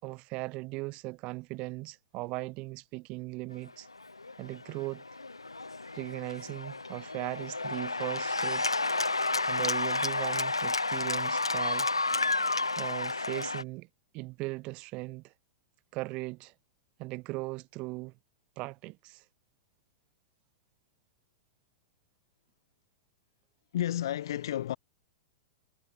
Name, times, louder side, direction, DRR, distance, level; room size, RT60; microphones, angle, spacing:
voice 1, 0.0-3.9 4.4-5.0 5.9-8.6 9.2-11.9 12.8-13.9 14.1-15.3 15.9-16.5 17.0-18.1 18.6-19.2, right 23 dB, 40° right, 6.1 m, -38 dB
Cheering / Applause, 4.0-13.6, left 3 dB, 90° left, 2.0 m, -31 dB
voice 2, 23.7-24.8, left 12 dB, 60° left, 2.2 m, -31 dB
figure-of-eight pair, 100°, 3 cm